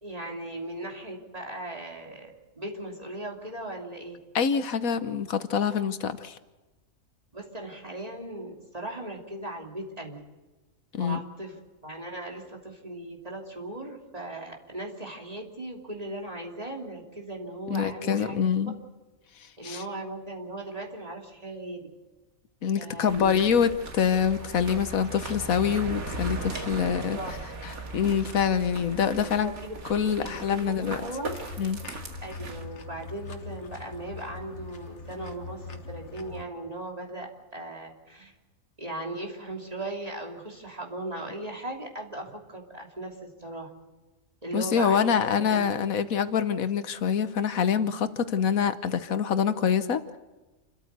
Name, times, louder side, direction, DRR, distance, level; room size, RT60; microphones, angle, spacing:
voice 1, 0.0-4.2 7.3-10.2 11.0-18.4 19.6-21.9 22.8-23.3 24.2-24.3 26.8-27.4 29.4-31.4 32.2-38.3 38.8-43.7 44.4-45.9, right 1 dB, 25° right, 0 dB, 3.1 m, -38 dB
voice 2, 4.3-6.4 10.9-11.2 17.7-18.7 19.6-19.8 22.6-27.2 27.9-29.5 29.9-31.0 31.6-31.8 44.5-50.2, left 7 dB, 80° left, 11 dB, 1.4 m, -25 dB
sound 1, 23.1-32.6, right 2 dB, 85° right, 2.6 m, -38 dB
sound 2, 31.2-36.4, left 3 dB, 55° left, 1.6 m, -42 dB
28.5 x 13.5 x 8.1 m, 1.2 s
omnidirectional pair, 1.4 m